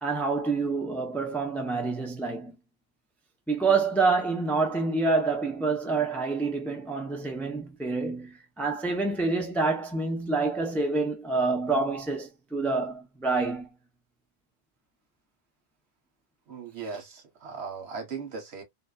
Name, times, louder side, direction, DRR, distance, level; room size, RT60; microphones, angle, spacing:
voice 1, 0.0-2.5 3.5-13.7, right 3 dB, ahead, 0.4 m, -27 dB
voice 2, 16.5-18.6, right 5 dB, 90° right, 1.3 m, -38 dB
2.6 x 2.2 x 2.3 m
omnidirectional pair, 1.0 m